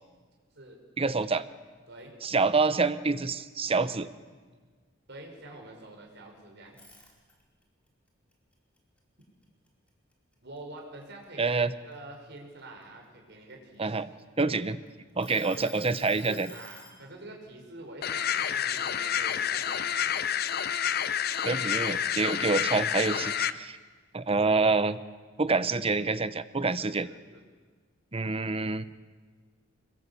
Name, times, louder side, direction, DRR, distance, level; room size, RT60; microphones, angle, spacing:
voice 1, 1.0-1.4 2.2-4.1 11.4-11.7 13.8-14.1 14.4-14.8 15.2-16.5 21.4-23.8 24.1-25.0 25.4-27.1 28.1-28.8, right 3 dB, 30° right, 14 dB, 0.9 m, -27 dB
voice 2, 5.1-6.8 10.4-14.0 14.7-14.8 15.3-20.5 26.8-27.4, right 2 dB, 60° right, 1 dB, 5.9 m, -47 dB
sound 1, 6.7-7.6 8.1-9.9 10.3-10.6 11.0-12.8 13.5-14.7 15.2-17.0, left 2 dB, 5° left, 4.4 m, -50 dB
sound 2, 18.0-23.5, left 9 dB, 50° left, 0.8 m, -29 dB
25.0 x 22.0 x 8.5 m, 1.5 s
head